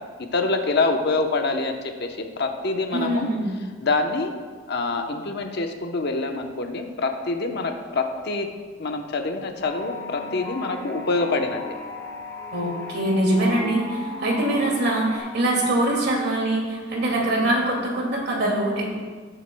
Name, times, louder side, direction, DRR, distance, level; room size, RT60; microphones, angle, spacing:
voice 1, 0.2-3.3 3.8-4.3 4.7-8.5 8.8-11.6 17.1-17.2, left 3 dB, 55° left, 4 dB, 0.8 m, -26 dB
voice 2, 2.9-3.5 12.5-18.9, right 1 dB, 55° right, -1 dB, 2.2 m, -23 dB
sound 1, 9.6-15.2, left 2 dB, 15° left, 1.8 m, -36 dB
17.0 x 7.9 x 2.2 m, 1.5 s
head